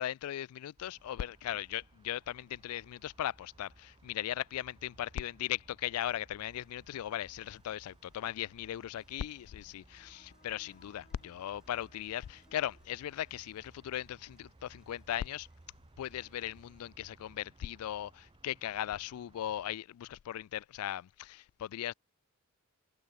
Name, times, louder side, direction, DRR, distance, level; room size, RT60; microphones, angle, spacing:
voice 1, 0.0-15.5 16.0-21.9, left 11 dB, 75° left, 0.3 m, -38 dB
sound 1, 0.8-19.8, right 2 dB, 25° right, 0.7 m, -61 dB
sound 2, 6.4-16.8, equal, 5° right, 5.6 m, -76 dB
sound 3, 9.8-13.6, left 3 dB, 40° left, 3.3 m, -67 dB
head